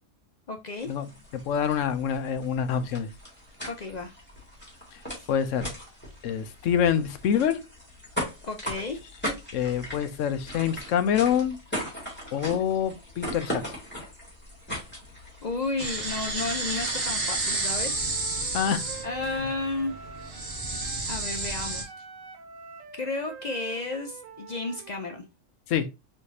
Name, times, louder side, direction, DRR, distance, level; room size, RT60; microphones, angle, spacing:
voice 1, 0.5-0.9 3.6-4.1 5.2-5.3 8.4-9.0 15.4-17.9 19.0-19.9 21.1-21.9 23.0-25.3, left 3 dB, 50° left, 0.5 m, -32 dB
sound 1, 0.8-17.3, equal, 10° left, 2.1 m, -39 dB
voice 2, 1.3-3.1 5.3-5.7 6.2-7.6 9.5-11.6 12.3-13.8 18.5-18.9 19.3-19.5 25.7-25.9, left 8 dB, 75° left, 1.0 m, -26 dB
sound 2, 15.8-21.8, right 2 dB, 45° right, 1.4 m, -31 dB
Wind instrument woodwind instrument, 17.4-21.1 21.4-25.3, right 6 dB, 75° right, 1.1 m, -45 dB
4.8 x 3.3 x 2.7 m
omnidirectional pair, 1.4 m